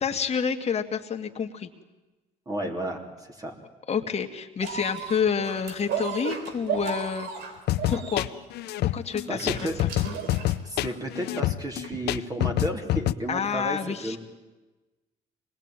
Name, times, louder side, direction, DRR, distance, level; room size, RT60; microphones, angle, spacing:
voice 1, 0.0-1.7 3.9-7.3 7.9-8.3 8.9-9.7 13.3-14.2, left 6 dB, 40° left, 5 dB, 2.1 m, -28 dB
voice 2, 2.5-3.6 9.3-9.8 10.6-14.2, right 1 dB, 20° right, 2 dB, 3.5 m, -32 dB
sound 1, 4.6-11.1 11.8-11.9, right 7 dB, 80° right, 3.5 m, -35 dB
sound 2, 7.7-13.1, left 15 dB, 75° left, 0.7 m, -27 dB
25.5 x 20.0 x 9.1 m, 1.1 s
cardioid pair, 110°, 17 cm